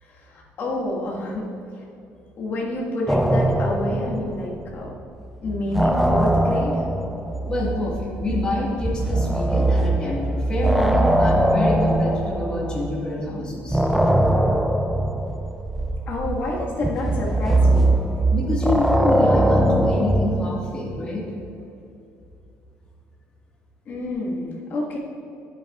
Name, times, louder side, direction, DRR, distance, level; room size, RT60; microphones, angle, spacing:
voice 1, 0.0-1.5 1.8-1.9 2.4-4.9 5.4-6.8 16.1-18.0 23.9-25.0, left 2 dB, 40° left, -3 dB, 1.6 m, -28 dB
sound 1, 3.1-4.9 5.2-13.1 13.7-20.6, right 1 dB, 5° right, 0.3 m, -21 dB
voice 2, 7.4-13.8 18.3-21.2, left 1 dB, 20° left, -4 dB, 1.6 m, -27 dB
10.5 x 8.3 x 2.4 m, 2.7 s
cardioid pair, 175°, 5 cm